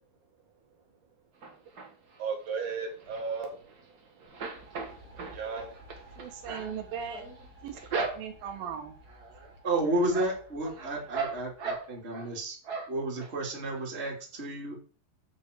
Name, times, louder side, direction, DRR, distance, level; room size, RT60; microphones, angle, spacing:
sound 1, 1.4-2.2 2.6-3.9 4.2-8.6 9.1-9.5 9.8-12.3 12.6-13.3 13.7-13.8 14.1-14.2, right 4 dB, 45° right, 1.3 m, -38 dB
voice 1, 2.2-3.7 4.7-6.1, right 5 dB, 65° right, 4 dB, 3.0 m, -36 dB
sound 2, 4.3-12.0, right 1 dB, 10° left, 2.8 m, -54 dB
voice 2, 6.2-7.2 7.6-9.0, right 7 dB, 85° right, 6 dB, 3.0 m, -38 dB
voice 3, 9.4-12.6 12.9-14.8, right 1 dB, 20° right, -2 dB, 2.5 m, -32 dB
7.8 x 5.4 x 6.6 m, 0.39 s
omnidirectional pair, 4.0 m